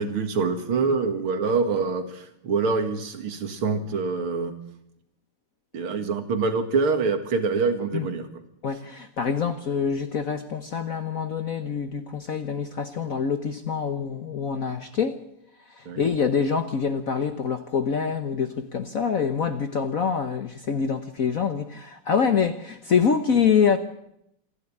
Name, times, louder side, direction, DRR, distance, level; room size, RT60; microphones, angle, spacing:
voice 1, 0.0-4.6 5.7-8.3 15.9-16.0, right 4 dB, 70° right, 2.6 m, -25 dB
voice 2, 8.6-15.2 15.7-23.8, left 6 dB, 55° left, 1.0 m, -25 dB
27.0 x 11.5 x 8.7 m
omnidirectional pair, 2.4 m